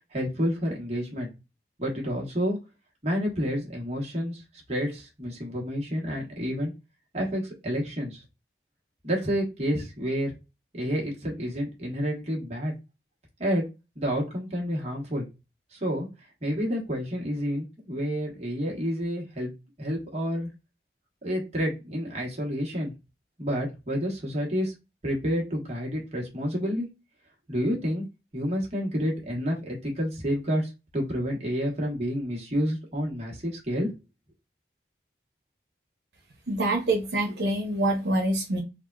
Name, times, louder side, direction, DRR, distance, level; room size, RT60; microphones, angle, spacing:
voice 1, 0.1-1.3 1.8-2.6 3.0-4.4 4.7-6.7 7.1-8.2 9.0-10.3 10.7-12.7 13.4-13.6 14.0-15.3 15.7-16.1 16.4-19.5 19.8-20.5 21.2-22.9 23.4-24.7 25.0-26.9 27.5-28.0 28.3-33.9, equal, 35° right, -2 dB, 1.1 m, -29 dB
voice 2, 36.5-38.6, right 1 dB, 75° right, 1 dB, 0.9 m, -25 dB
3.5 x 2.2 x 2.3 m, 0.26 s
head